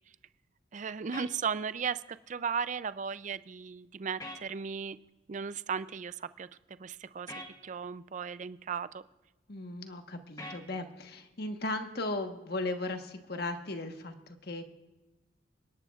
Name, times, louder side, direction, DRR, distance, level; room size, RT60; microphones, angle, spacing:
voice 1, 0.7-2.0 2.3-5.0 5.3-6.5 6.8-7.3 7.6-9.0, right 6 dB, 40° right, 15 dB, 0.4 m, -36 dB
sound 1, 1.1-1.3 4.2-4.4 7.3-7.5 10.4-10.6, left 1 dB, 20° left, 1.4 m, -42 dB
voice 2, 9.5-14.6, left 2 dB, 55° left, 6 dB, 1.2 m, -37 dB
28.0 x 11.5 x 2.4 m, 1.1 s
head